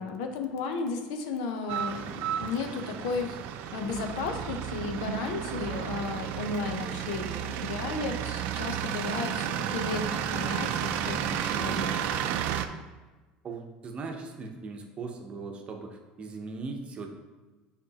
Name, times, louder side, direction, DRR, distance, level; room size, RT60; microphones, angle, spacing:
voice 1, 0.0-3.4 3.7-11.9, left 4 dB, 85° left, 5 dB, 0.8 m, -34 dB
sound 1, 1.7-12.7, right 9 dB, 65° right, 0.4 m, -32 dB
voice 2, 13.4-17.1, right 4 dB, 35° right, 3 dB, 0.9 m, -39 dB
7.9 x 4.4 x 2.9 m, 1.2 s
supercardioid pair, 125°, 4 cm